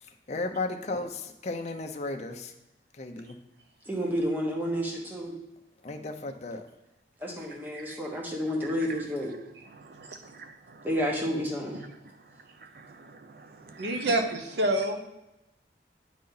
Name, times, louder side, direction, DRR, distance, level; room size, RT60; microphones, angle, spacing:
voice 1, 0.3-2.5 3.0-3.3 5.8-6.6, left 2 dB, 40° left, 0.6 m, -34 dB
voice 2, 3.9-5.4 7.2-9.4 10.8-11.8, equal, 10° right, 1.2 m, -30 dB
voice 3, 7.5-8.0 8.6-8.7 9.7-10.9 11.7-12.0 12.7-14.1, right 4 dB, 55° right, 0.5 m, -48 dB
voice 4, 13.8-15.0, right 1 dB, 75° right, 0.9 m, -27 dB
8.6 x 4.1 x 3.9 m
head